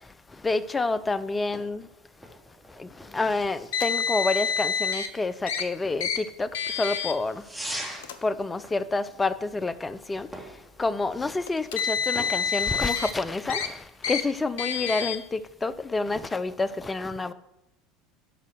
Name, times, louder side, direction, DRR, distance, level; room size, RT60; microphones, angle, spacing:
voice 1, 0.4-1.9 2.8-6.5 6.8-7.4 8.2-10.3 10.8-17.3, left 3 dB, 20° left, 0.7 m, -28 dB
sound 1, 1.0-13.5, right 1 dB, 5° right, 3.2 m, -44 dB
Car, 3.7-5.1 5.5-5.6 6.0-6.2 6.5-7.1 7.9-8.1 9.1-9.2 11.5-13.1 13.5-13.7 14.0-14.2 14.6-15.2, left 6 dB, 75° left, 0.9 m, -27 dB
13.0 x 5.6 x 6.4 m
hypercardioid pair, 75°, 0 cm